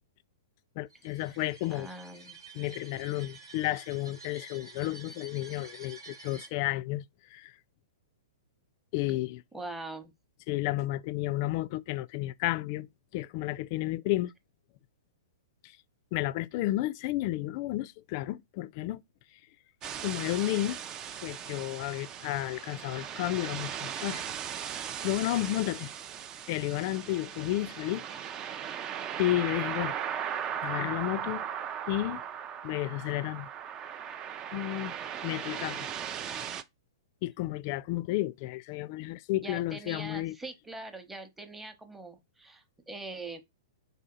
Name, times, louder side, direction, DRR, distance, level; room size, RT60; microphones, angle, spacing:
voice 1, 0.8-1.9 2.5-7.0 7.3-7.5 8.9-9.4 10.5-14.3 16.1-19.0 20.0-20.8 21.2-24.2 24.6-24.8 25.0-25.9 26.5-28.0 29.2-29.9 30.6-31.4 31.9-32.2 32.6-33.5 34.5-34.9 35.2-35.9 37.2-40.3, left 16 dB, 45° left, 0.3 m, -32 dB
sound 1, 0.9-6.5, right 3 dB, 90° right, 1.3 m, -50 dB
voice 2, 1.7-2.4 3.2-3.3 9.5-10.1 39.3-43.4, right 2 dB, 5° right, 0.9 m, -43 dB
sound 2, 19.8-36.6, right 9 dB, 30° right, 0.4 m, -38 dB
4.0 x 2.8 x 3.9 m
hypercardioid pair, 115°, 2 cm